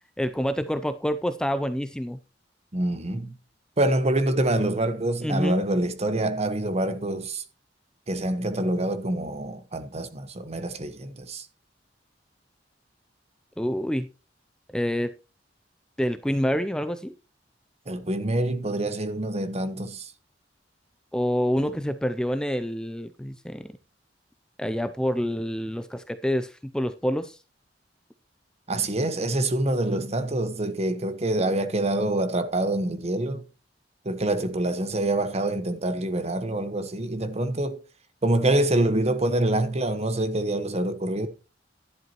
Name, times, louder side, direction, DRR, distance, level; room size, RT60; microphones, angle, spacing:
voice 1, 0.2-2.2 5.2-5.7 13.6-14.1 14.7-15.1 16.0-17.1 21.1-23.8 24.6-27.4, equal, 5° left, 0.5 m, -27 dB
voice 2, 2.7-3.3 3.8-7.4 8.1-11.5 17.9-20.1 21.6-21.8 28.7-33.4 34.0-37.8 38.2-41.3, right 1 dB, 35° right, 1.2 m, -26 dB
12.0 x 11.0 x 3.0 m
head